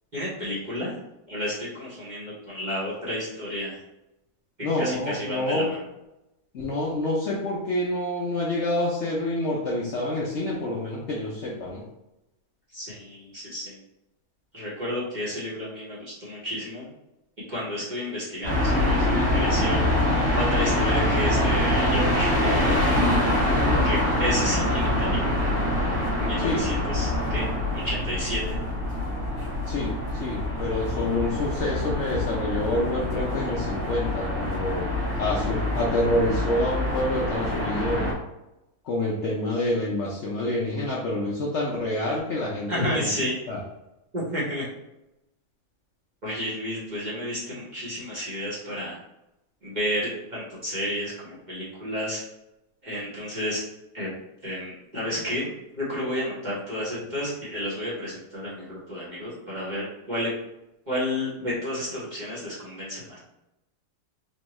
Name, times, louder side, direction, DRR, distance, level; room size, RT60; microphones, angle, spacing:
voice 1, 0.1-0.9 1.3-3.8 4.8-5.8 12.7-13.8 14.5-16.9 17.5-22.9 23.8-25.7 26.2-28.6 42.7-43.4 44.1-44.6 46.2-49.0 49.6-52.2 52.8-53.6 53.9-54.1 54.4-60.3 60.9-63.2, equal, 35° right, -8 dB, 1.0 m, -31 dB
voice 2, 4.6-5.7 6.5-11.8 23.5-23.9 26.4-26.7 29.7-34.9 35.1-38.1 38.8-43.1 43.5-43.6, left 1 dB, 65° left, -4 dB, 0.7 m, -27 dB
sound 1, 18.4-38.1, left 1 dB, 85° right, 2.1 m, -25 dB
4.3 x 2.3 x 3.0 m, 0.92 s
omnidirectional pair, 1.7 m